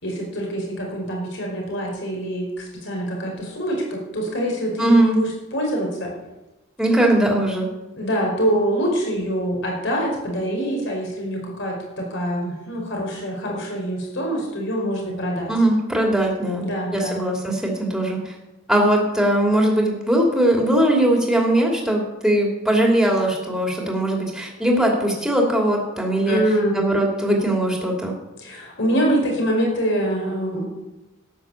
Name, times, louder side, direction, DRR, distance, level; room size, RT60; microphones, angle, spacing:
voice 1, 0.0-6.1 7.9-15.5 16.6-17.2 26.3-26.8 28.4-30.6, equal, 60° left, -1 dB, 5.0 m, -25 dB
voice 2, 4.8-5.2 6.8-7.7 15.5-16.6 16.9-18.3 18.7-26.4 26.7-28.1, right 1 dB, ahead, -1 dB, 2.8 m, -20 dB
13.0 x 9.9 x 7.2 m, 1.0 s
head